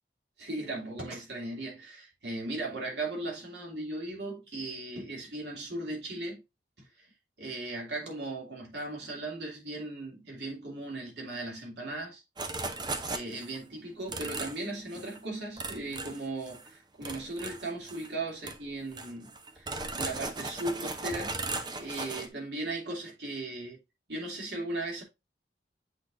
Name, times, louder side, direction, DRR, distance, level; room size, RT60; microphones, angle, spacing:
voice 1, 0.4-6.4 6.8-6.9 7.4-12.2 13.1-21.4 21.8-23.8 24.1-25.0, right 2 dB, 75° right, 2.7 m, -37 dB
sound 1, 12.4-13.6 14.1-14.6 14.9-15.2 15.6-16.7 17.0-18.1 18.4-18.6 18.9-22.3, right 3 dB, 25° right, 0.7 m, -37 dB
7.9 x 4.9 x 2.6 m
head